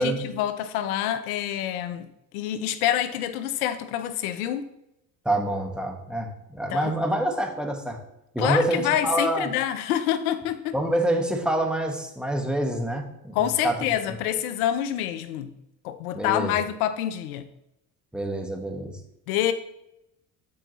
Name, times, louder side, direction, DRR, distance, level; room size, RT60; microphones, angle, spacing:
voice 1, 0.0-2.1 2.3-4.7 6.7-6.9 8.4-10.8 13.3-15.5 15.8-17.5 19.3-19.5, left 11 dB, 90° left, 0.6 m, -27 dB
voice 2, 5.2-8.0 8.3-9.5 10.7-13.9 16.1-16.5 18.1-19.0, right 1 dB, ahead, 1.5 m, -26 dB
12.0 x 4.6 x 3.1 m
supercardioid pair, 70°, 42 cm